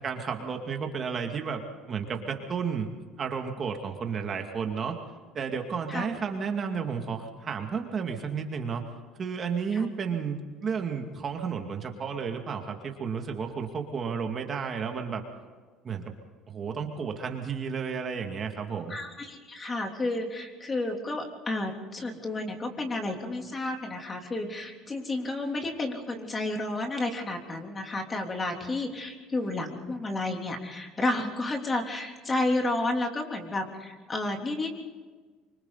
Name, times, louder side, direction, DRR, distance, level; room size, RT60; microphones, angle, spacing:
voice 1, 0.0-2.9 3.2-5.0 5.3-8.8 9.2-15.2 15.8-16.1 16.5-19.0, right 6 dB, 35° right, 3 dB, 2.4 m, -32 dB
voice 2, 18.9-34.8, left 2 dB, 25° left, 3 dB, 3.3 m, -31 dB
25.5 x 24.5 x 4.1 m, 1.4 s
cardioid pair, 115°, 0 cm